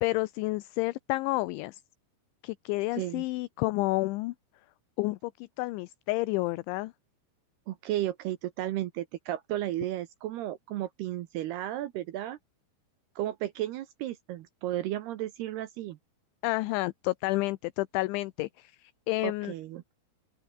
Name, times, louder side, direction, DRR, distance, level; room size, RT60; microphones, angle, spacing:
voice 1, 0.0-1.8 2.4-4.3 5.0-6.9 16.4-19.5, left 21 dB, 80° left, 2.9 m, -30 dB
voice 2, 2.9-3.2 7.7-12.4 13.2-16.0 19.2-19.9, right 14 dB, 75° right, 2.5 m, -34 dB
open air
omnidirectional pair, 5.7 m